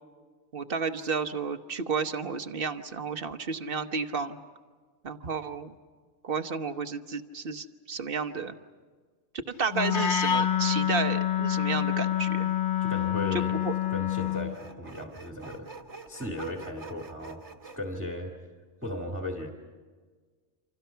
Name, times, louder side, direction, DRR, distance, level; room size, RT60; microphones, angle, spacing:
voice 1, 0.5-4.4 5.0-5.7 6.2-8.5 9.5-12.5 13.3-13.7, right 5 dB, 55° right, 8 dB, 1.2 m, -32 dB
Wind instrument woodwind instrument, 9.7-14.6, left 10 dB, 50° left, 1.0 m, -27 dB
Sawing, 12.4-12.5 13.6-17.8, right 3 dB, 80° right, 1.9 m, -47 dB
voice 2, 12.8-13.5 13.9-15.7 16.1-18.3 18.8-19.5, left 1 dB, 10° right, 1 dB, 1.9 m, -36 dB
29.0 x 26.5 x 5.7 m, 1.5 s
omnidirectional pair, 1.2 m